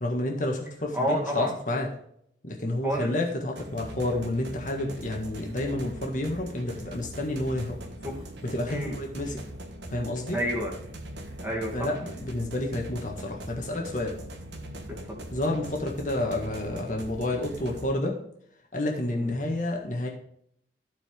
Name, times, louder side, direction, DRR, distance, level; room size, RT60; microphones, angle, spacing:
voice 1, 0.0-1.9 2.4-7.8 8.4-9.4 9.9-10.4 11.7-14.1 15.3-18.2 18.7-20.1, left 1 dB, 45° left, 1 dB, 1.7 m, -30 dB
voice 2, 0.9-1.5 2.8-3.1 7.7-7.8 8.7-9.0 10.3-10.7 11.4-11.9 14.9-15.2 19.1-19.3, equal, 10° right, -2 dB, 2.5 m, -30 dB
sound 1, 3.6-17.9, right 1 dB, 80° right, 1.4 m, -41 dB
14.5 x 4.9 x 3.6 m, 0.69 s
head